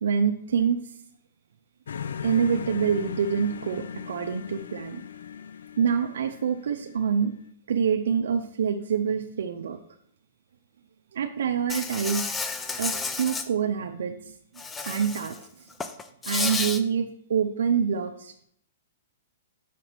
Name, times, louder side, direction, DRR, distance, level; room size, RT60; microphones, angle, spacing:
voice 1, 0.0-0.8 2.2-5.0 5.8-7.4 7.7-9.8 11.1-12.3 12.8-14.3 14.9-15.5 16.3-18.3, right 7 dB, 75° right, 5 dB, 0.5 m, -26 dB
sound 1, 1.9-7.5, left 7 dB, 85° left, 0.4 m, -38 dB
Insect, 11.7-13.5 14.6-15.4 15.7-16.8, left 4 dB, 10° left, 0.4 m, -31 dB
5.8 x 5.0 x 4.6 m, 0.68 s
hypercardioid pair, 160°, 0 cm